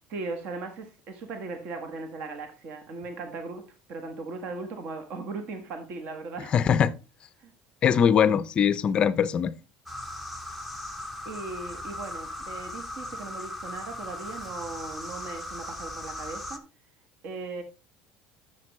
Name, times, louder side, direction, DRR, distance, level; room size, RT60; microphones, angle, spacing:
voice 1, 0.1-6.5 7.4-7.5 11.2-16.6 17.2-17.6, right 3 dB, 45° right, 1.4 m, -38 dB
voice 2, 6.5-6.9 7.8-9.5, left 8 dB, 30° left, 0.5 m, -21 dB
sound 1, 9.9-16.6, left 1 dB, ahead, 0.8 m, -38 dB
10.5 x 6.9 x 3.1 m
cardioid pair, 155°, 3 cm